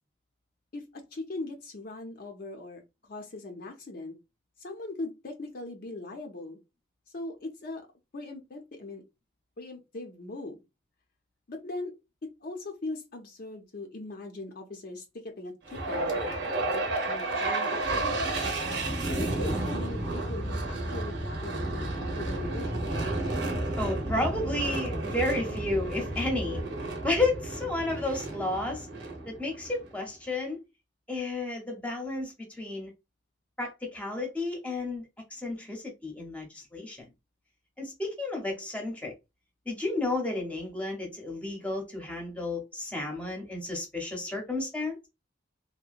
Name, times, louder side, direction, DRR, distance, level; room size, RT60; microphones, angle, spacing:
voice 1, 0.7-4.1 4.6-6.6 7.1-7.9 8.1-9.0 9.6-10.6 11.5-11.9 12.4-16.3 16.7-18.3 19.1-22.7, left 2 dB, 50° left, 0.5 m, -40 dB
sound 1, 15.7-29.9, right 2 dB, 65° right, 0.7 m, -31 dB
voice 2, 23.8-26.6 27.0-28.9 29.3-30.6 31.1-32.9 33.6-35.1 35.3-37.1 37.8-39.1 39.7-45.1, left 2 dB, 5° left, 0.7 m, -32 dB
2.8 x 2.1 x 2.4 m
head